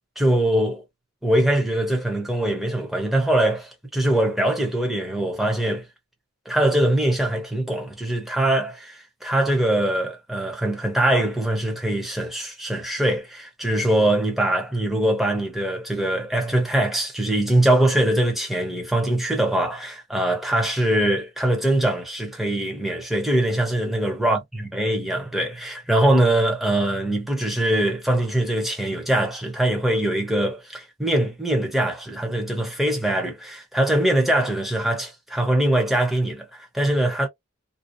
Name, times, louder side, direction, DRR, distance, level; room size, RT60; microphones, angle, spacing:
voice 1, 0.2-0.8 1.2-5.8 6.5-37.3, right 1 dB, ahead, 0.7 m, -22 dB
2.5 x 2.0 x 2.5 m
head